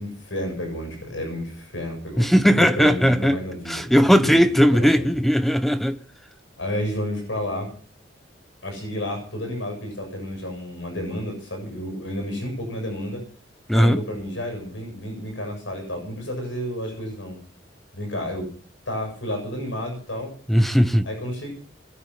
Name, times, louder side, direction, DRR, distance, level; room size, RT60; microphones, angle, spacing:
voice 1, 0.0-5.1 6.6-7.7 8.6-13.2 13.7-17.4 17.9-18.5 18.9-20.3 21.0-21.5, left 1 dB, 80° left, 7.6 m, -31 dB
voice 2, 2.2-6.0 13.7-14.0 20.5-21.1, equal, ahead, 0.9 m, -18 dB
21.0 x 9.3 x 5.8 m
head